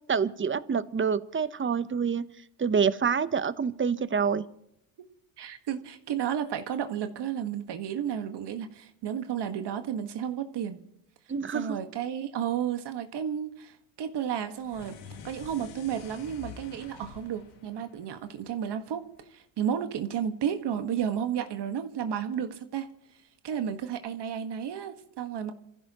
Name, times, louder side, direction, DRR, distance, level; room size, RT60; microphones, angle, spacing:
voice 1, 0.1-2.2 2.6-4.4 11.3-11.7, right 6 dB, 25° right, 15 dB, 0.9 m, -27 dB
voice 2, 5.4-10.8 11.5-14.9 15.2-22.9 23.4-25.5, right 9 dB, 55° right, 8 dB, 1.6 m, -32 dB
sound 1, 14.6-19.0, left 6 dB, 80° left, 2.3 m, -48 dB
27.5 x 15.0 x 3.0 m, 0.78 s
supercardioid pair, 75°, 49 cm